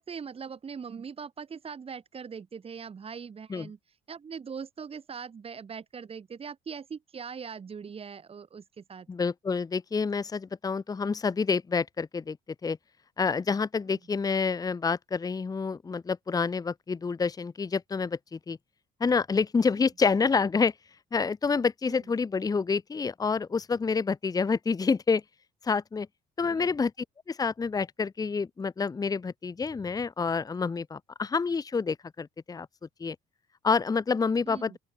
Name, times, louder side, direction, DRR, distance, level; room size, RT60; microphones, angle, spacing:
voice 1, 0.0-9.1 13.9-14.0 21.9-22.0 26.4-26.8 34.5-34.8, right 6 dB, 35° right, 5.4 m, -41 dB
voice 2, 9.1-12.4 12.6-12.8 13.2-18.6 19.0-20.7 21.1-25.2 25.6-26.1 26.4-26.9 27.3-32.7 33.0-33.2 33.6-34.7, left 5 dB, 20° left, 1.0 m, -28 dB
open air
cardioid pair, 110°, 17 cm